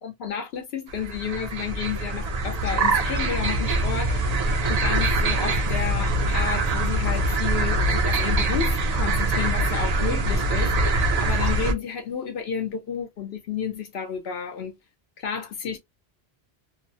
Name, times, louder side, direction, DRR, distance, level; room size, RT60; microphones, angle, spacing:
voice 1, 0.0-4.3 4.7-14.8 15.2-15.8, left 7 dB, 75° left, 0.9 m, -31 dB
sound 1, 0.9-11.7, right 2 dB, 50° right, 0.5 m, -23 dB
2.9 x 2.0 x 2.6 m
omnidirectional pair, 1.1 m